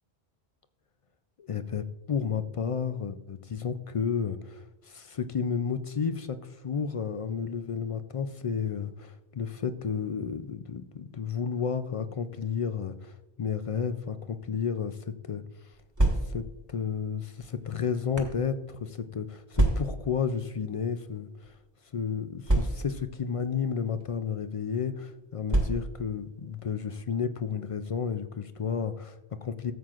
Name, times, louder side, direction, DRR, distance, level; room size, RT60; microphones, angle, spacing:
voice 1, 1.4-15.4 16.2-21.6 21.9-29.7, left 6 dB, 55° left, 10 dB, 0.3 m, -32 dB
sound 1, 15.7-16.6 17.4-18.4 19.5-20.1 21.0-21.2 21.4-21.5 22.4-23.1 24.0-24.2 25.5-26.1, right 1 dB, 15° right, 1.2 m, -27 dB
16.0 x 7.6 x 2.4 m, 1.0 s
omnidirectional pair, 1.1 m